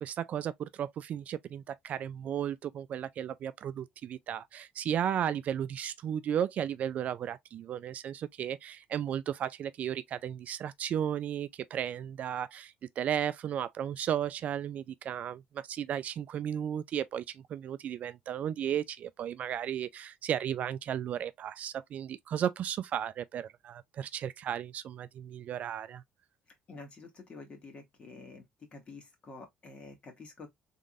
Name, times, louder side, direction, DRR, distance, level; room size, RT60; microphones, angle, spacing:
voice 1, 0.0-26.0, right 9 dB, 50° right, 0.4 m, -34 dB
voice 2, 26.7-28.4 28.7-30.5, left 3 dB, 35° left, 1.9 m, -48 dB
3.7 x 3.7 x 2.4 m
cardioid pair, 130°, 3 cm